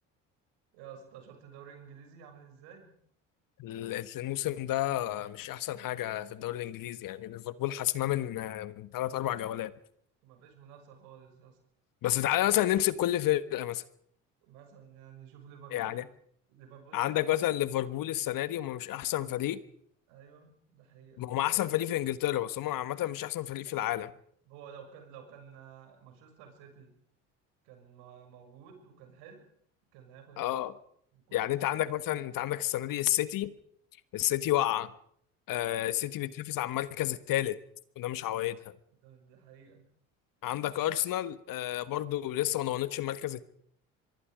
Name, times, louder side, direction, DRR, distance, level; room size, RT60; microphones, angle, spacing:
voice 1, 0.7-2.9 10.2-11.6 14.4-16.0 16.5-17.2 20.1-21.2 23.7-23.8 24.4-26.9 27.6-29.5 29.9-30.6 31.1-31.5 35.8-36.0 39.0-39.8, right 7 dB, 75° right, 6.6 m, -52 dB
voice 2, 3.6-9.7 12.0-13.8 15.7-16.0 16.9-19.6 21.2-24.1 30.4-30.7 31.3-33.5 34.1-34.9 35.5-37.6 38.0-38.6 40.4-43.4, left 13 dB, 55° left, 1.5 m, -30 dB
24.0 x 23.0 x 5.0 m
hypercardioid pair, 70°, 39 cm